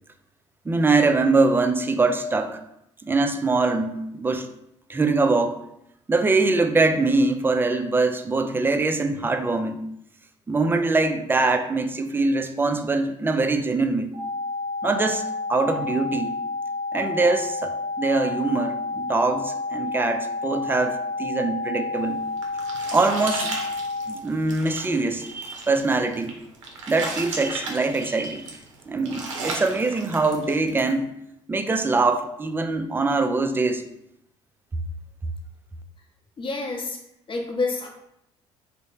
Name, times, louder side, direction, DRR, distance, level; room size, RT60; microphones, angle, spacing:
voice 1, 0.7-2.6 3.0-4.5 4.9-5.6 6.1-9.8 10.5-14.1 14.8-16.3 16.9-22.2 22.9-23.5 24.1-26.3 26.9-28.5 28.9-31.1 31.5-33.8, right 3 dB, 15° right, 7 dB, 0.3 m, -23 dB
sound 1, 14.1-24.1, left 3 dB, 45° right, 0.7 m, -30 dB
sound 2, 22.0-30.9, right 3 dB, 90° right, 0.5 m, -36 dB
voice 2, 36.4-37.0 37.3-37.9, left 3 dB, 35° left, 1 dB, 0.7 m, -28 dB
3.1 x 2.1 x 3.6 m, 0.79 s
hypercardioid pair, 55°, 16 cm